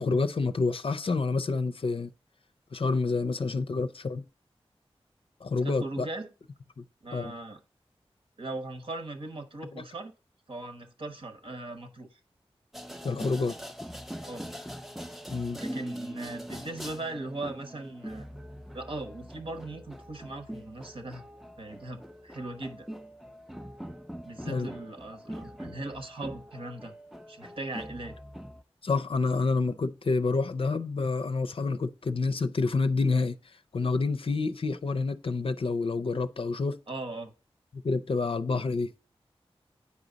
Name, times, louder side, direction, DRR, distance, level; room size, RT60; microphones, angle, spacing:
voice 1, 0.0-2.1 2.7-4.2 5.4-6.1 6.8-6.9 7.1-7.3 9.7-9.8 13.0-13.5 15.3-15.6 24.5-24.7 28.8-33.4 33.7-36.8 37.7-38.9, left 4 dB, 60° left, 0.5 m, -28 dB
voice 2, 5.6-6.3 7.0-7.6 8.4-10.1 10.5-12.2 14.2-14.5 15.6-18.3 18.7-21.2 21.6-22.9 24.2-26.9 27.3-28.2 36.9-37.3, right 2 dB, 60° right, 1.1 m, -39 dB
sound 1, 12.7-28.6, equal, ahead, 0.5 m, -42 dB
8.5 x 5.0 x 4.0 m
wide cardioid pair, 55°, 11 cm